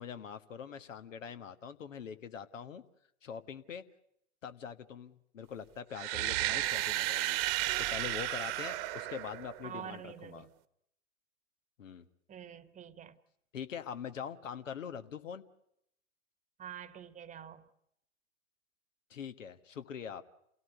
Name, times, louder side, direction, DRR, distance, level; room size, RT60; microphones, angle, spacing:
voice 1, 0.0-2.8 3.2-3.8 4.4-7.4 7.9-10.5 11.8-12.1 13.5-15.4 19.1-20.2, left 7 dB, 75° left, 1.5 m, -43 dB
sound 1, 5.9-9.9, right 16 dB, 45° right, 1.2 m, -33 dB
voice 2, 9.6-10.5 12.3-13.2 16.6-17.7, right 9 dB, 20° right, 1.2 m, -46 dB
28.0 x 17.5 x 8.1 m
hypercardioid pair, 105°, 39 cm